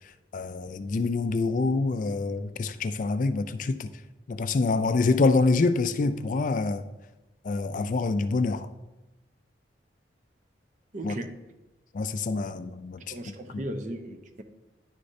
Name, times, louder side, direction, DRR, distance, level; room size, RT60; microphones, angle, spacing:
voice 1, 0.3-3.9 4.3-6.8 7.4-8.7 11.0-11.1 11.9-13.0, left 3 dB, 45° left, 0.4 m, -26 dB
voice 2, 10.9-11.4 13.1-14.4, right 1 dB, 45° right, 0.7 m, -36 dB
10.5 x 6.6 x 2.7 m
head